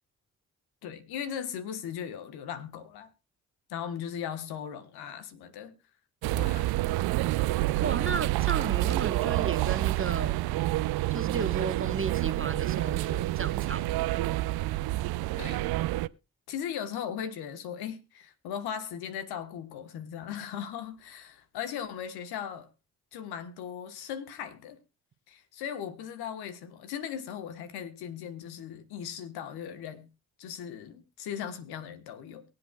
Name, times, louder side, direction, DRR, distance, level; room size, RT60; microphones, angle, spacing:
voice 1, 0.8-3.1 3.7-5.7 6.3-6.7 15.4-15.6 16.5-22.7 23.1-24.8 25.3-30.1 30.4-32.4, left 8 dB, 80° left, 1.3 m, -38 dB
sound 1, 6.2-16.1, right 17 dB, 75° right, 0.5 m, -28 dB
voice 2, 7.8-10.6 11.1-14.4, right 5 dB, 35° right, 1.3 m, -34 dB
23.5 x 7.8 x 2.3 m
hypercardioid pair, 45°, 38 cm